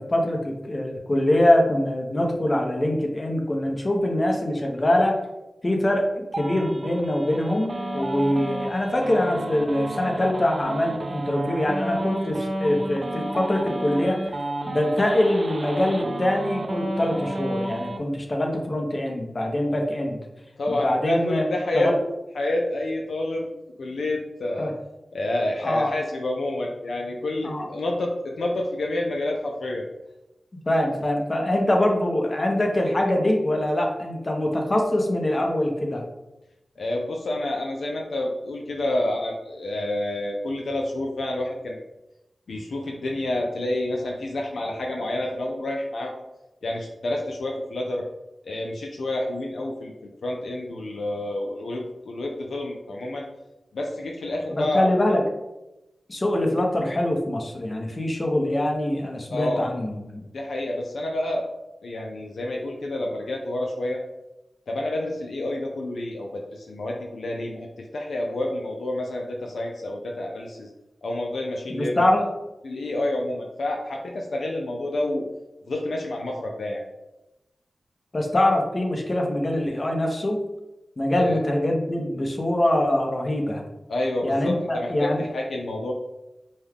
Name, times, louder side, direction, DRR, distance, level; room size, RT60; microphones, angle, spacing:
voice 1, 0.0-5.2 5.6-14.2 14.6-20.2 20.7-22.0 24.6-24.7 25.6-25.9 27.4-27.7 30.7-36.0 54.5-55.2 56.1-60.2 71.7-72.2 78.1-80.4 81.0-83.6 84.2-85.2, left 1 dB, 40° left, 1 dB, 0.9 m, -23 dB
sound 1, 6.3-18.0, right 1 dB, 50° right, 0.5 m, -32 dB
voice 2, 20.6-21.9 22.3-23.5 23.8-24.7 25.1-29.9 36.8-41.8 42.5-46.1 46.6-48.1 48.4-49.9 50.2-53.2 53.7-54.8 59.3-59.7 60.3-61.4 61.8-64.0 64.7-70.7 71.0-72.1 72.6-75.2 75.7-76.8 81.2-81.4 83.9-85.9, left 1 dB, 80° left, 0 dB, 0.5 m, -28 dB
5.2 x 2.3 x 3.5 m, 0.97 s
cardioid pair, 40°, 0 cm